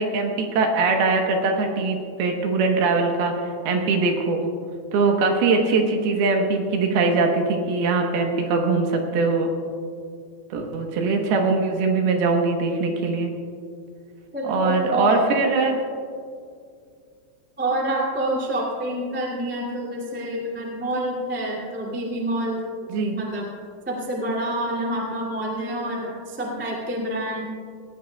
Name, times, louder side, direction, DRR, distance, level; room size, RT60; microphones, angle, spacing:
voice 1, 0.0-4.5 4.9-9.5 10.5-13.3 14.4-15.8 22.9-23.2, right 3 dB, 70° right, 2 dB, 2.8 m, -22 dB
voice 2, 14.3-15.2 17.6-22.6 23.1-23.5 23.8-27.4, right 1 dB, 10° right, -3 dB, 0.6 m, -27 dB
19.0 x 18.5 x 2.3 m, 2.2 s
omnidirectional pair, 5.1 m